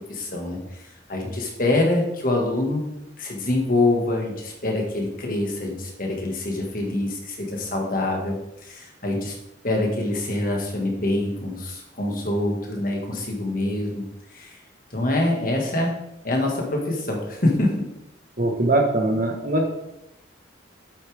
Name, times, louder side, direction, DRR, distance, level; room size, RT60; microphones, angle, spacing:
voice 1, 0.1-0.6 1.1-2.9 3.2-8.4 8.7-9.3 9.6-14.1 14.3-14.5 14.9-15.9 16.2-17.7, left 2 dB, 50° left, 1 dB, 1.9 m, -25 dB
voice 2, 18.4-19.7, right 2 dB, 50° right, 2 dB, 1.5 m, -21 dB
8.7 x 8.4 x 3.6 m, 0.87 s
head